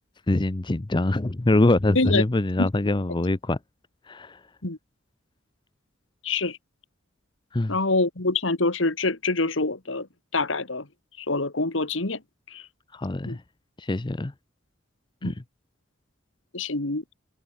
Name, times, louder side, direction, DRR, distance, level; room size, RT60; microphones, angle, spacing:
voice 1, 0.3-3.6 4.1-4.4 7.5-7.8 12.9-13.4 13.8-14.3 15.2-15.3, left 2 dB, 25° left, 0.6 m, -24 dB
voice 2, 6.2-6.6 7.7-10.1 10.3-10.9 11.2-12.2 12.5-12.6 13.2-13.4 15.2-15.3 16.5-17.0, left 3 dB, 70° left, 2.1 m, -25 dB
head